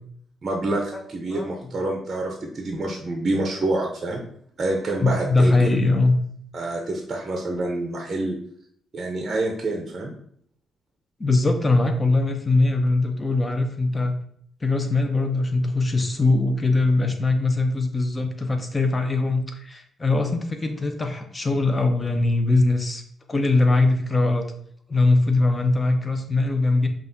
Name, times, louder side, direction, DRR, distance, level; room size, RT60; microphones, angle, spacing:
voice 1, 0.4-4.2 4.6-5.7 6.5-8.3 8.9-10.1, right 2 dB, 35° right, 1 dB, 0.6 m, -27 dB
voice 2, 5.0-6.2 11.2-14.2 14.6-23.0 23.3-24.5 24.9-26.9, left 2 dB, 25° left, 6 dB, 0.6 m, -21 dB
5.3 x 2.4 x 2.7 m, 0.66 s
cardioid pair, 90°, 0 cm